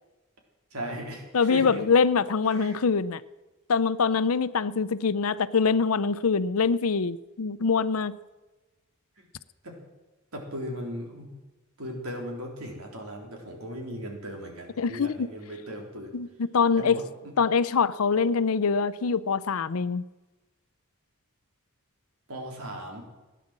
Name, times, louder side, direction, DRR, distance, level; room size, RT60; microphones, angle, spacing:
voice 1, 0.7-1.8 2.5-2.8 9.6-9.8 10.3-11.3 11.8-16.1 16.7-17.3 22.3-23.0, equal, 85° right, 1 dB, 3.8 m, -37 dB
voice 2, 1.3-3.2 3.7-8.1 14.8-15.3 16.1-16.3 16.5-17.0 17.4-20.0, left 5 dB, 85° left, 16 dB, 0.6 m, -24 dB
16.5 x 10.0 x 7.5 m, 1.2 s
head